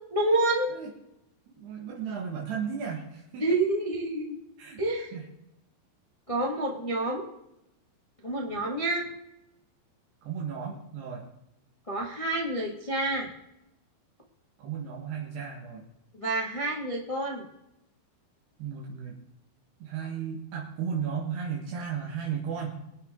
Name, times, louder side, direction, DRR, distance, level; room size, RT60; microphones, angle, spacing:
voice 1, 0.1-0.7 3.4-4.4 4.8-5.1 6.3-7.3 8.2-9.0 11.9-13.3 16.1-17.4, right 2 dB, 15° left, -1 dB, 1.1 m, -28 dB
voice 2, 1.5-3.4 4.6-4.8 5.1-5.2 10.2-11.2 14.6-15.8 18.6-19.2 19.8-22.8, right 7 dB, 75° right, -2 dB, 3.8 m, -34 dB
24.0 x 9.1 x 3.8 m, 0.85 s
omnidirectional pair, 4.8 m